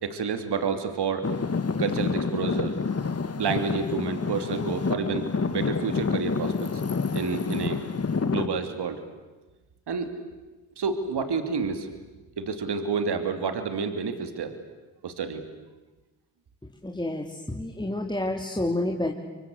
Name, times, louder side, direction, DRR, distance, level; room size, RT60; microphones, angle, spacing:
voice 1, 0.0-1.3 1.8-2.8 3.4-6.8 7.1-7.8 8.2-9.0 9.9-10.1 10.8-11.9 12.4-14.6 15.0-15.4, right 5 dB, 60° right, 8 dB, 3.0 m, -29 dB
Traffic noise roadway noise / Engine, 1.2-8.5, left 5 dB, 35° left, 1.8 m, -28 dB
voice 2, 16.8-19.1, left 1 dB, 10° left, 0 dB, 3.0 m, -29 dB
29.5 x 24.0 x 8.0 m, 1.2 s
supercardioid pair, 50°, 45 cm